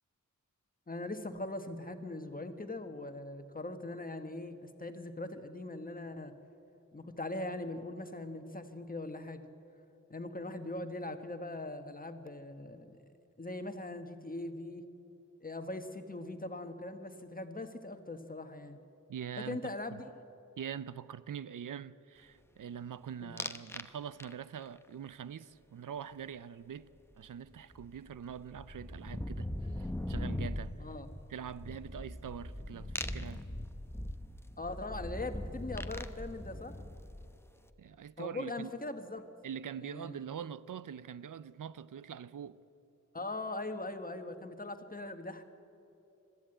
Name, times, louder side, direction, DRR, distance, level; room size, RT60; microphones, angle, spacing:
voice 1, 0.9-6.3 6.9-9.4 10.1-13.0 13.4-14.8 15.4-18.8 19.5-20.1 23.2-23.3 30.8-31.1 34.6-36.7 38.2-39.3 39.8-40.2 43.1-45.4, left 2 dB, 25° left, 1.3 m, -41 dB
voice 2, 19.1-20.0 20.6-26.9 27.2-30.7 31.3-33.5 37.8-38.7 39.4-42.6, right 8 dB, 80° right, 0.5 m, -44 dB
sound 1, 23.4-23.9 24.2-24.7 27.1-27.2 27.4-37.5, left 1 dB, 10° left, 0.8 m, -40 dB
22.0 x 13.5 x 8.8 m
wide cardioid pair, 110°, 32 cm